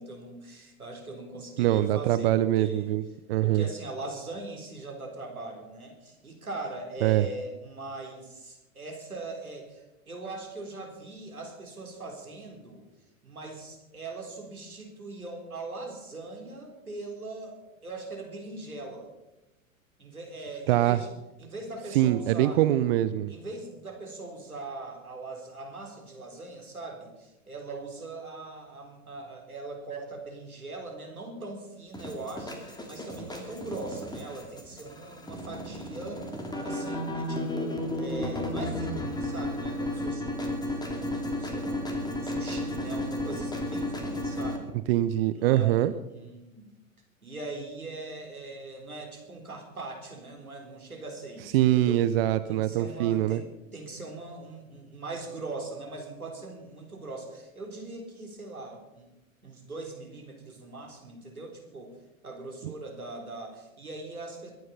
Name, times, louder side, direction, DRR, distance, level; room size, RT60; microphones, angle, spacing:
voice 1, 0.0-2.3 2.6-2.9 3.4-12.8 13.2-19.1 20.0-21.1 21.4-22.6 23.3-36.4 36.6-40.7 41.0-44.7 45.3-46.7 47.2-52.1 52.5-59.1 59.4-61.9 62.2-64.5, right 2 dB, 85° right, 2 dB, 4.0 m, -41 dB
voice 2, 1.6-3.0 3.3-3.7 7.0-7.3 20.7-21.0 21.9-23.3 44.9-45.9 51.5-53.4, right 13 dB, 45° right, 13 dB, 0.7 m, -23 dB
sound 1, 31.9-44.6, left 1 dB, 10° left, 2.6 m, -33 dB
22.0 x 9.4 x 5.5 m, 0.98 s
figure-of-eight pair, 100°, 42 cm